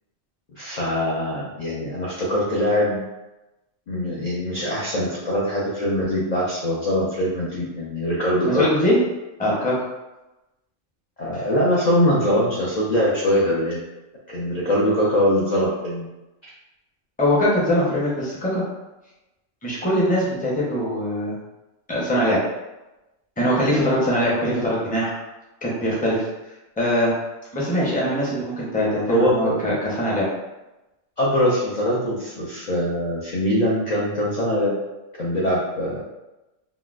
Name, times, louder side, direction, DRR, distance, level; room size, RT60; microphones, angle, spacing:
voice 1, 0.6-3.0 3.9-8.7 11.2-13.8 14.3-16.1 29.1-29.7 31.2-34.7 35.2-36.0, equal, 55° left, -6 dB, 0.5 m, -22 dB
voice 2, 8.4-9.0 9.4-9.8 17.2-18.6 19.6-21.4 21.9-22.4 23.4-25.1 25.6-26.3 26.8-27.1 27.5-30.3, equal, 10° left, -6 dB, 0.5 m, -22 dB
3.8 x 2.1 x 2.4 m, 1.0 s
omnidirectional pair, 1.3 m